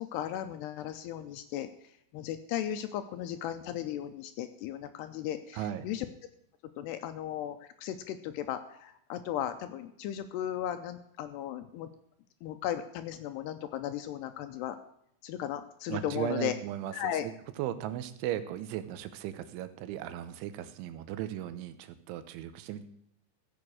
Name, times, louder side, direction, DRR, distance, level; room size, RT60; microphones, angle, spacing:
voice 1, 0.0-1.7 2.1-6.1 6.8-11.9 12.4-14.8 15.2-16.5 16.9-17.2, left 11 dB, 80° left, 9 dB, 2.5 m, -36 dB
voice 2, 5.5-5.9 15.9-22.8, right 11 dB, 90° right, 11 dB, 3.3 m, -37 dB
15.0 x 6.9 x 6.2 m, 0.75 s
omnidirectional pair, 5.3 m